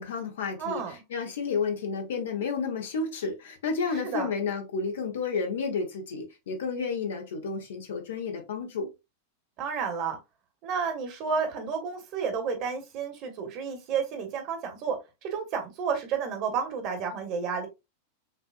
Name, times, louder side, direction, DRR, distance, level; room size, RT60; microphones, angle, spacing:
voice 1, 0.0-8.9, left 5 dB, 60° left, 1.1 m, -31 dB
voice 2, 0.6-1.0 3.8-4.3 9.6-10.2 10.6-17.7, right 6 dB, 40° right, 1.3 m, -31 dB
6.0 x 2.7 x 2.4 m
figure-of-eight pair, 90°, 0 cm